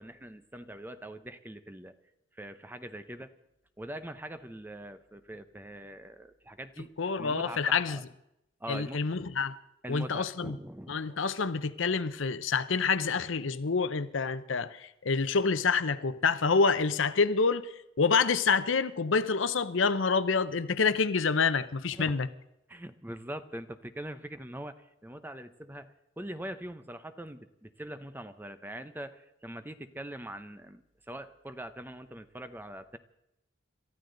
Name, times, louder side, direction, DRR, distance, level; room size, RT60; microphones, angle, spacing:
voice 1, 0.0-1.9 2.3-3.3 3.8-8.0 8.6-9.0 9.8-11.0 21.9-22.1 22.7-33.0, right 1 dB, 10° right, 0.7 m, -43 dB
voice 2, 7.0-8.0 8.7-9.5 9.9-10.6 10.9-17.7 18.0-22.3, left 5 dB, 70° left, 0.7 m, -27 dB
27.5 x 13.5 x 3.9 m
head